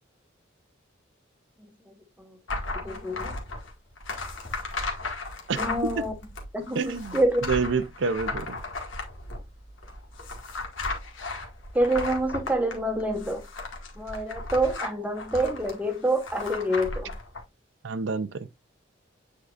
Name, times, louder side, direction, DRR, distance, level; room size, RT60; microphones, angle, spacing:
sound 1, 2.5-17.4, left 3 dB, 80° left, 1.9 m, -35 dB
voice 1, 2.8-3.3 5.6-6.1 6.5-7.4 11.7-13.4 14.0-17.1, right 1 dB, 10° right, 1.3 m, -26 dB
voice 2, 6.7-8.6 17.8-18.5, right 4 dB, 65° right, 0.5 m, -28 dB
8.5 x 4.7 x 2.4 m
head